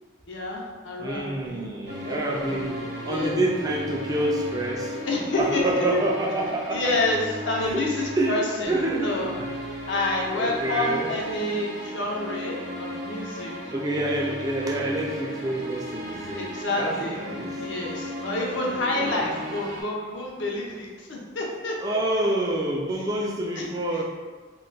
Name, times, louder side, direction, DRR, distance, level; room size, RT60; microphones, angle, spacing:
voice 1, 0.3-1.7 2.0-3.4 5.0-6.0 6.7-8.7 9.0-13.5 16.3-17.3 17.6-22.0 23.6-23.7, left 2 dB, 65° left, -2 dB, 0.5 m, -29 dB
voice 2, 1.0-5.0 5.3-7.0 7.6-7.8 8.2-9.5 10.3-11.2 13.7-17.6 18.7-19.3 21.8-24.0, right 1 dB, 20° right, -1 dB, 0.3 m, -28 dB
sound 1, 1.8-19.8, left 1 dB, 55° right, 0.7 m, -36 dB
2.2 x 2.1 x 3.8 m, 1.4 s
head